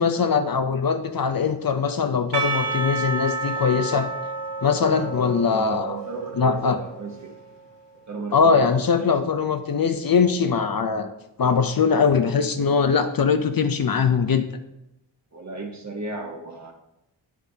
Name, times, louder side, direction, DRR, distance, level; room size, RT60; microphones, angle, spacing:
voice 1, 0.0-4.1 4.6-6.0 6.4-6.8 8.3-11.1 11.4-14.4, left 5 dB, 50° left, 9 dB, 0.6 m, -21 dB
Percussion / Church bell, 2.3-7.6, right 3 dB, 65° right, 1.0 m, -30 dB
voice 2, 5.0-7.3 8.1-9.1 15.3-16.7, right 3 dB, 35° right, 2 dB, 1.3 m, -35 dB
8.9 x 7.3 x 2.8 m, 0.89 s
wide cardioid pair, 80°, 46 cm